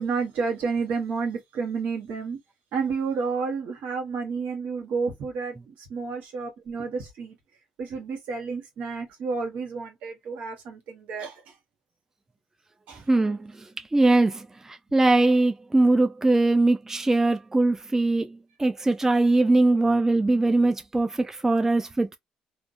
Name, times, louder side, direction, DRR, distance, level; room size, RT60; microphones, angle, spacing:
voice 1, 0.0-2.4 2.7-7.4 7.8-11.4 12.9-13.0, right 5 dB, 75° right, 1.1 m, -30 dB
voice 2, 13.1-13.5 13.9-22.2, right 2 dB, 15° right, 0.4 m, -21 dB
2.4 x 2.3 x 2.5 m
supercardioid pair, 65°, 3 cm